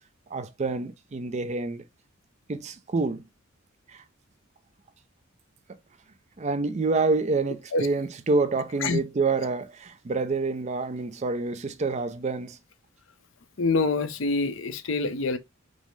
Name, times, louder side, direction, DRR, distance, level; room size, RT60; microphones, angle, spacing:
voice 1, 0.3-1.8 2.5-3.2 3.9-4.0 6.4-12.6, right 3 dB, 35° right, 0.4 m, -27 dB
voice 2, 13.6-15.4, left 3 dB, 65° left, 0.6 m, -25 dB
5.2 x 2.0 x 3.1 m
head